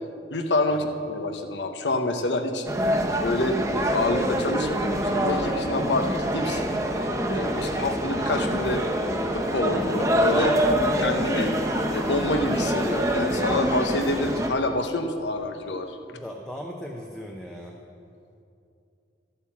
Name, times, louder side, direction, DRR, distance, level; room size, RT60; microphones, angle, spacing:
voice 1, 0.3-2.7 3.2-6.6 7.2-8.8 9.3-10.6 10.9-11.5 11.9-16.0, left 2 dB, 75° left, 6 dB, 1.0 m, -27 dB
sound 1, 2.7-14.5, equal, 15° right, 1.0 m, -25 dB
voice 2, 16.1-17.8, equal, 5° left, -1 dB, 0.7 m, -38 dB
12.0 x 8.5 x 7.3 m, 2.6 s
head